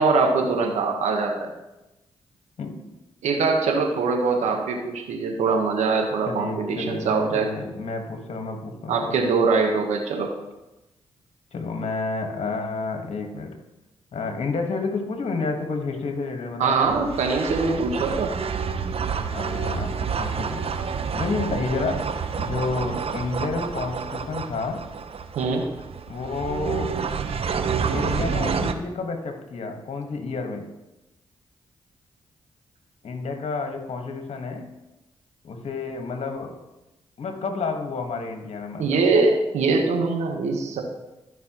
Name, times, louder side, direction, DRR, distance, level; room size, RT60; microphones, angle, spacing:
voice 1, 0.0-1.5 3.2-7.5 8.9-10.3 16.6-18.3 25.3-25.7 38.8-40.8, right 4 dB, 80° right, 2 dB, 1.2 m, -22 dB
voice 2, 2.6-2.9 6.3-9.2 11.5-13.5 14.1-17.1 19.3-20.6 21.1-22.0 22.3-24.8 26.1-27.0 27.9-30.6 33.0-34.7 35.4-36.6 37.2-39.0, left 3 dB, 65° left, 4 dB, 1.5 m, -30 dB
sound 1, 16.8-28.7, right 6 dB, 55° right, 0.7 m, -29 dB
13.5 x 5.5 x 3.0 m, 0.99 s
supercardioid pair, 40°, 12 cm